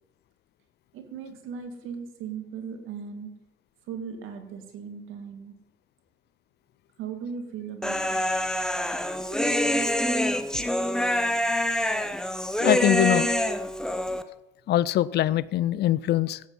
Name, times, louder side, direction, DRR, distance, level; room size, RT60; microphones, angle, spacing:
voice 1, 0.9-3.4 3.9-5.5 7.0-8.3 8.9-9.5, right 6 dB, 80° right, 7 dB, 1.9 m, -38 dB
Human voice, 7.8-14.2, left 1 dB, 5° left, 0.9 m, -26 dB
voice 2, 12.6-13.3 14.7-16.4, left 13 dB, 55° left, 19 dB, 0.4 m, -23 dB
13.5 x 8.4 x 5.4 m, 0.94 s
supercardioid pair, 75°, 20 cm